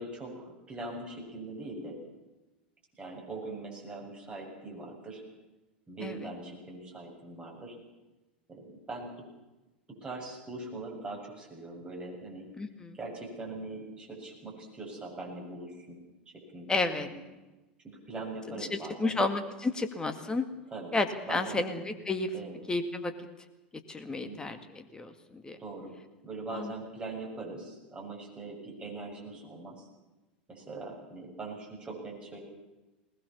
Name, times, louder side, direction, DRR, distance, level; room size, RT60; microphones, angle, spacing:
voice 1, 0.0-2.0 2.9-5.2 5.9-7.8 8.5-9.1 10.0-12.5 12.9-16.0 16.3-17.2 17.8-19.2 20.7-21.0 21.3-21.7 22.3-22.6 24.1-24.4 25.6-25.9 26.2-29.9 30.5-32.4, right 2 dB, 20° right, -1 dB, 7.3 m, -41 dB
voice 2, 12.6-13.0 16.7-17.1 18.6-20.5 20.9-22.3 22.7-23.1 23.9-25.6 26.5-26.7, left 3 dB, 15° left, 8 dB, 2.1 m, -31 dB
20.0 x 19.5 x 7.1 m, 1.1 s
figure-of-eight pair, 85°, 6 cm